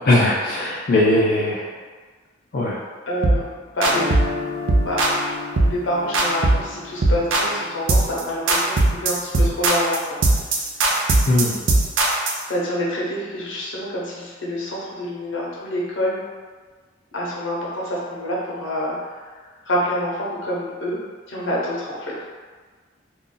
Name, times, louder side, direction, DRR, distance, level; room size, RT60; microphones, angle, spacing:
voice 1, 0.0-1.7 2.5-2.8 11.2-11.6, left 1 dB, 50° left, -7 dB, 0.4 m, -19 dB
voice 2, 3.1-4.4 4.8-5.4 5.6-10.2 10.5-10.6 12.5-16.2 17.1-19.4 19.6-21.0 21.3-22.2, equal, 80° left, -5 dB, 0.8 m, -27 dB
sound 1, 3.2-3.5 3.8-4.3 4.7-5.2 5.6-5.8 6.1-6.7 7.0-7.5 7.9-8.2 8.5-12.4, right 2 dB, 80° right, 0.5 m, -19 dB
Guitar, 3.8-9.8, left 4 dB, 40° right, 1.1 m, -35 dB
2.5 x 2.3 x 3.7 m, 1.5 s
head